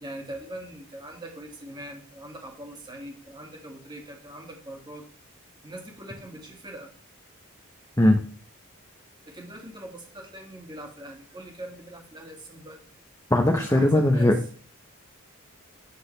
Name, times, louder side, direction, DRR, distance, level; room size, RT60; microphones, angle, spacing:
voice 1, 0.0-5.1 5.6-6.9 9.3-12.8 13.5-14.3, right 1 dB, 20° right, 1 dB, 2.1 m, -42 dB
voice 2, 13.3-14.4, left 1 dB, 15° left, 2 dB, 0.9 m, -19 dB
9.9 x 6.3 x 3.3 m, 0.42 s
head